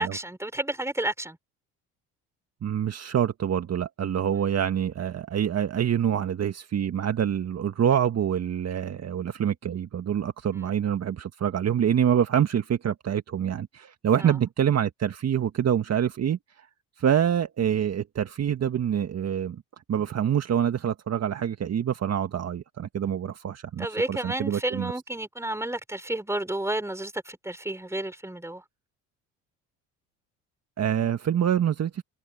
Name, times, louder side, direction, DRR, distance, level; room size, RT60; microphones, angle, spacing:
voice 1, 0.0-1.4 10.5-10.6 14.2-14.3 23.8-28.6, right 1 dB, 5° right, 4.5 m, -31 dB
voice 2, 2.6-16.7 17.0-19.6 19.9-24.9 30.8-32.0, right 9 dB, 45° right, 1.7 m, -26 dB
hypercardioid pair, 70°, 37 cm